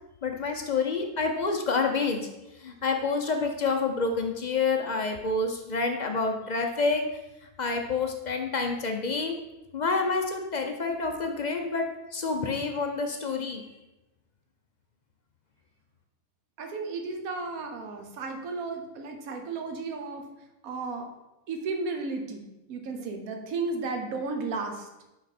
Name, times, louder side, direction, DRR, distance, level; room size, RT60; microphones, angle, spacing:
voice 1, 0.2-2.3 2.6-7.0 7.6-9.3 9.7-13.7, left 4 dB, 55° left, 4 dB, 0.4 m, -28 dB
voice 2, 16.6-20.3 20.6-21.1 21.5-24.9, right 3 dB, 75° right, 5 dB, 1.3 m, -34 dB
6.3 x 5.3 x 4.2 m, 0.96 s
omnidirectional pair, 1.5 m